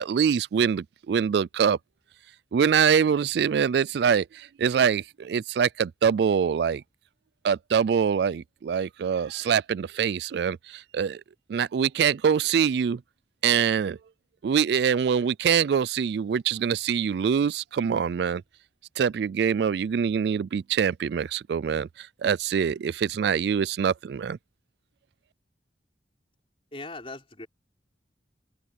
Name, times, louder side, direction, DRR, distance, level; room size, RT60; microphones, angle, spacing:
voice 1, 0.0-1.8 2.5-6.8 7.4-11.2 11.5-13.0 13.4-14.0 14.4-18.4 19.0-24.4, right 7 dB, 65° right, 0.3 m, -24 dB
voice 2, 26.7-27.5, left 2 dB, 30° left, 4.5 m, -39 dB
open air
head